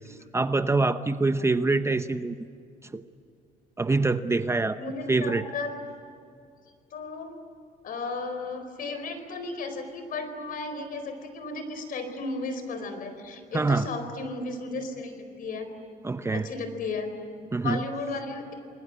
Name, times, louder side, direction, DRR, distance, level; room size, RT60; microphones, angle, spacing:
voice 1, 0.1-2.3 2.8-3.0 3.8-4.8 5.1-5.4 13.5-13.9 16.0-16.5 17.5-17.8, right 3 dB, 15° right, 10 dB, 0.8 m, -25 dB
voice 2, 4.8-5.8 6.9-7.4 7.8-15.7 16.3-17.1 17.4-18.5, left 3 dB, 55° left, 8 dB, 4.5 m, -34 dB
29.5 x 21.0 x 8.8 m, 2.5 s
cardioid pair, 110°, 17 cm